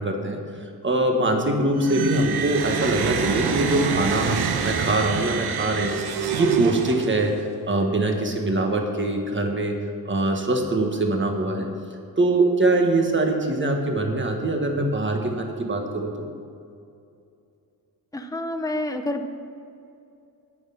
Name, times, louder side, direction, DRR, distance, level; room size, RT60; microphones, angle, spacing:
voice 1, 0.0-9.8 10.0-11.7 12.2-16.2, right 2 dB, 30° right, 3 dB, 1.5 m, -23 dB
sound 1, 1.8-7.4, right 6 dB, 85° right, 1.0 m, -26 dB
voice 2, 18.1-19.3, left 1 dB, 10° left, 6 dB, 0.7 m, -28 dB
9.8 x 9.2 x 5.8 m, 2.6 s
wide cardioid pair, 130°, 38 cm